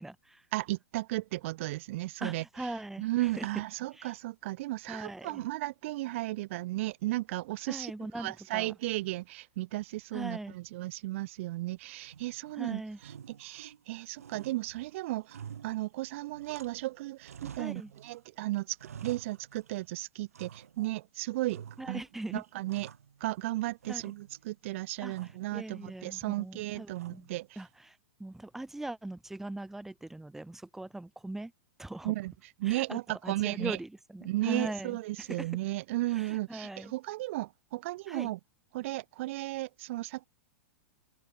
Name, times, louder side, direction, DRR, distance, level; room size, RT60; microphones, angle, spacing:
voice 1, 0.0-0.4 2.2-3.5 3.9-4.1 4.9-5.5 7.7-8.7 10.1-10.6 12.5-13.0 17.6-17.9 21.8-22.4 23.9-24.1 25.0-31.5 31.8-32.2 32.6-35.5 36.1-36.9 38.1-38.3, right 2 dB, 5° right, 0.6 m, -41 dB
voice 2, 0.5-2.7 3.0-7.9 8.2-22.0 22.3-22.9 23.2-27.5 32.0-32.3 32.6-33.8 34.2-38.4 38.7-40.3, right 18 dB, 60° right, 0.7 m, -35 dB
sound 1, 12.0-12.6 13.0-13.9 14.2-16.9 17.2-18.2 18.5-19.9 20.3-21.0 21.5-22.1 22.4-23.5 23.8-24.5 25.1-25.5 26.9-27.5, right 8 dB, 90° right, 1.4 m, -49 dB
hypercardioid pair, 120°, 8 cm